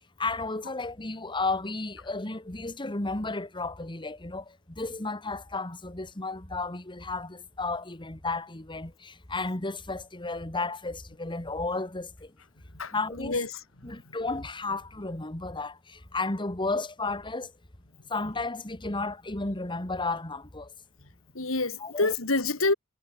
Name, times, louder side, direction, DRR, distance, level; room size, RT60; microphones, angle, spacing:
voice 1, 0.2-12.3 12.9-13.4 13.8-17.5 18.1-20.7 21.8-22.1, left 3 dB, 25° left, 1.9 m, -33 dB
voice 2, 12.7-13.5 13.8-13.9 21.3-22.7, left 3 dB, 90° left, 3.0 m, -27 dB
head